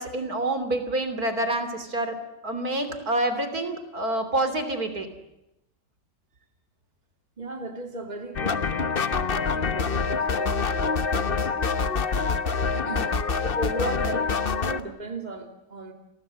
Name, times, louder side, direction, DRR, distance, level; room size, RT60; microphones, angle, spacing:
voice 1, 0.0-2.2 2.4-5.1, right 1 dB, 55° right, 8 dB, 3.5 m, -27 dB
voice 2, 7.4-9.0 9.3-11.5 12.3-13.1 13.4-15.9, right 2 dB, 25° right, 4 dB, 2.9 m, -36 dB
sound 1, 8.4-14.8, left 5 dB, 40° left, 1.1 m, -26 dB
30.0 x 22.5 x 7.7 m, 0.91 s
omnidirectional pair, 1.9 m